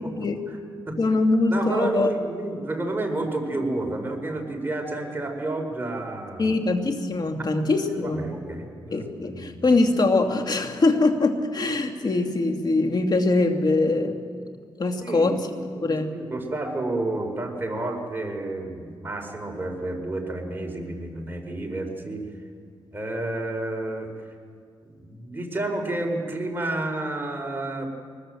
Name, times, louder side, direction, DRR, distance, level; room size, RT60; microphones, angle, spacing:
voice 1, 1.0-2.1 6.4-8.2 8.9-14.2 14.8-15.4 15.8-16.1, left 2 dB, 45° left, 5 dB, 2.4 m, -22 dB
voice 2, 1.5-6.5 8.0-9.6 15.0-22.2 22.9-24.1 25.0-27.9, right 2 dB, 20° right, 2 dB, 4.6 m, -30 dB
23.5 x 20.5 x 7.8 m, 2.1 s
cardioid pair, 75°, 9 cm